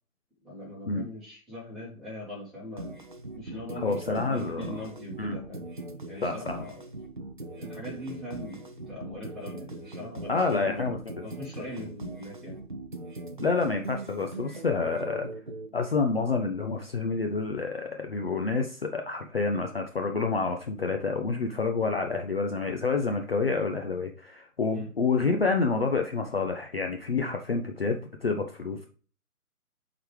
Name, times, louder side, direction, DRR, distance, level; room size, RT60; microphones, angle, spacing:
voice 1, 0.4-2.9 3.4-5.7 6.1-6.8 7.5-10.3 10.6-10.8 11.2-12.6 24.7-24.9, left 1 dB, ahead, -11 dB, 1.8 m, -41 dB
sound 1, 2.8-15.7, right 2 dB, 35° right, 0.5 m, -40 dB
voice 2, 3.8-4.9 5.2-5.3 6.2-6.6 10.3-11.2 13.4-15.3 15.7-28.9, left 4 dB, 40° left, 4 dB, 0.6 m, -28 dB
7.7 x 3.9 x 3.3 m, 0.40 s
figure-of-eight pair, 145°, 44 cm